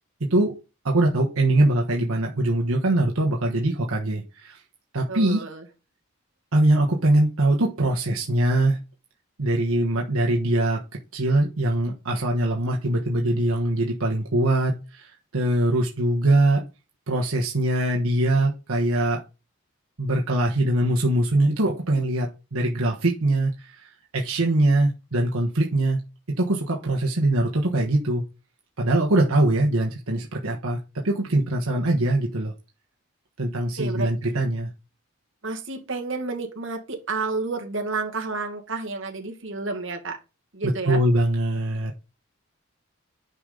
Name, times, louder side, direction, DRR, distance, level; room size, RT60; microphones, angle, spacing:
voice 1, 0.8-4.6 4.9-5.5 6.5-8.8 9.4-10.8 11.1-16.6 17.1-19.2 20.0-26.0 26.4-28.2 28.8-32.5 33.4-34.7 40.6-42.0, right 1 dB, 80° right, -1 dB, 1.3 m, -22 dB
voice 2, 5.1-5.6 33.8-34.1 35.4-40.2 40.5-41.0, right 3 dB, 60° right, 2 dB, 1.9 m, -30 dB
9.7 x 5.2 x 3.9 m, 0.30 s
head